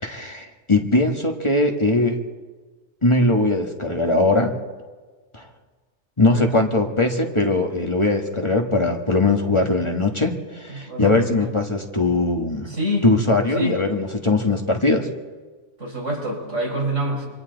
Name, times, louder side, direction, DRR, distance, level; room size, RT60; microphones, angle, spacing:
voice 1, 0.0-2.2 3.0-4.5 5.3-5.5 6.2-12.7 13.0-15.1, left 2 dB, 25° left, 3 dB, 1.5 m, -20 dB
voice 2, 10.7-11.5 12.7-13.1 13.5-13.8 15.8-17.3, equal, 90° right, -2 dB, 5.3 m, -26 dB
27.5 x 25.0 x 4.0 m, 1.4 s
omnidirectional pair, 1.2 m